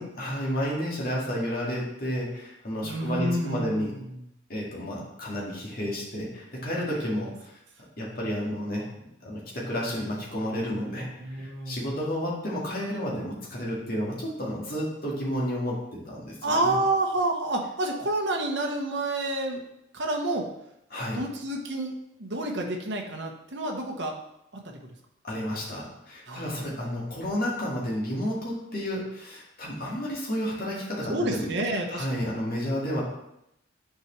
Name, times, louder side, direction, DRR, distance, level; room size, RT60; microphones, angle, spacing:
voice 1, 0.0-3.9 4.5-7.3 8.0-8.9 9.2-16.8 20.9-21.2 25.2-31.5 31.9-33.0, equal, 45° left, -4 dB, 2.0 m, -31 dB
voice 2, 2.8-4.3 10.9-11.8 16.4-19.6 19.9-20.5 21.1-24.2 24.6-24.7 26.3-27.0 31.1-32.3, right 1 dB, 55° right, 1 dB, 1.0 m, -29 dB
8.7 x 4.8 x 3.2 m, 0.82 s
head